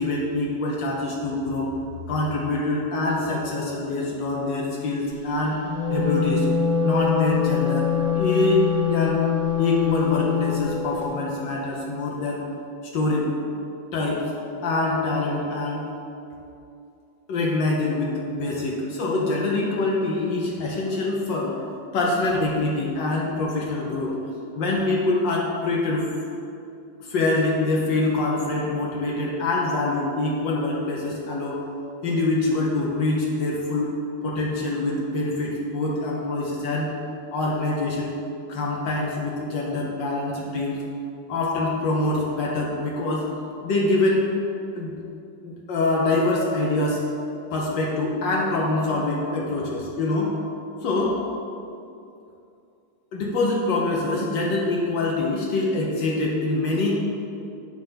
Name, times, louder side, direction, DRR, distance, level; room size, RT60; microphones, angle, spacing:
voice 1, 0.0-1.7 2.1-5.6 5.9-6.5 6.8-9.3 9.6-12.4 12.9-13.3 13.9-14.3 14.6-15.8 17.3-21.6 21.9-24.2 24.5-26.0 27.1-31.6 32.0-33.9 34.2-36.9 37.3-38.1 38.5-40.8 41.3-43.2 43.6-44.3 44.7-44.9 45.4-47.0 47.5-50.3 50.8-51.2 53.1-57.0, left 2 dB, 75° left, -3 dB, 1.5 m, -24 dB
Wind instrument woodwind instrument, 5.5-10.7, left 8 dB, 20° right, 1.0 m, -24 dB
9.0 x 3.3 x 5.6 m, 2.6 s
omnidirectional pair, 2.1 m